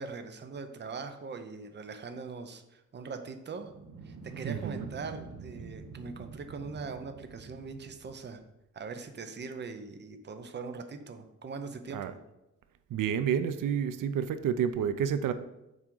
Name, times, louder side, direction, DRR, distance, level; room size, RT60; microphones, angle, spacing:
voice 1, 0.0-3.7 4.0-8.4 8.7-12.2, right 4 dB, 35° right, 8 dB, 0.6 m, -41 dB
sound 1, 3.5-8.4, right 4 dB, 60° right, 0.9 m, -46 dB
voice 2, 4.4-4.8 11.9-12.1 12.9-15.3, right 8 dB, 85° right, 11 dB, 0.5 m, -29 dB
7.4 x 4.8 x 3.8 m, 0.92 s
wide cardioid pair, 150°, 31 cm